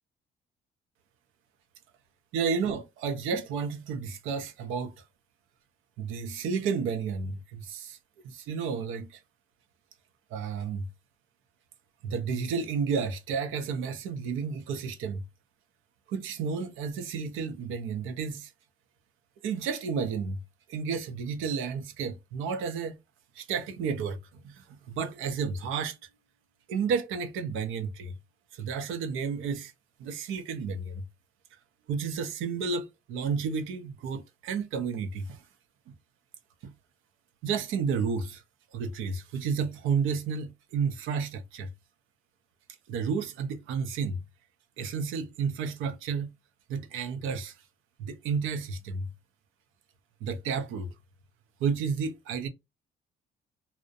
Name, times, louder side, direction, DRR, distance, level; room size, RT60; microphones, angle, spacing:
voice 1, 2.3-5.0 6.0-8.0 8.2-9.2 10.3-10.9 12.0-15.2 16.1-18.5 19.4-20.4 20.7-23.0 23.4-26.0 26.7-28.2 28.5-29.7 30.0-31.0 31.9-35.4 35.9-36.0 36.6-36.7 37.4-38.4 38.7-41.7 42.9-44.2 44.8-46.3 46.7-47.5 48.0-49.1 50.2-50.9 51.6-52.5, right 5 dB, 90° right, 0.5 m, -31 dB
2.5 x 2.1 x 2.6 m
cardioid pair, 90°, 20 cm